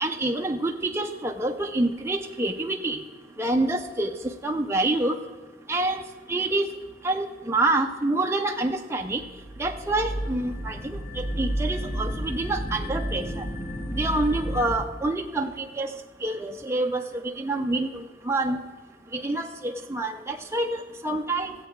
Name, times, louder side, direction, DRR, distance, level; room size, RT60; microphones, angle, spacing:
voice 1, 0.0-3.0 3.4-5.2 5.7-6.0 6.3-6.7 7.0-9.2 9.6-13.4 14.0-15.9 16.2-18.6 19.1-21.5, right 2 dB, 15° right, 2 dB, 0.5 m, -27 dB
sound 1, 9.1-14.8, equal, 40° left, 1.6 m, -31 dB
14.5 x 8.1 x 4.5 m, 1.4 s
head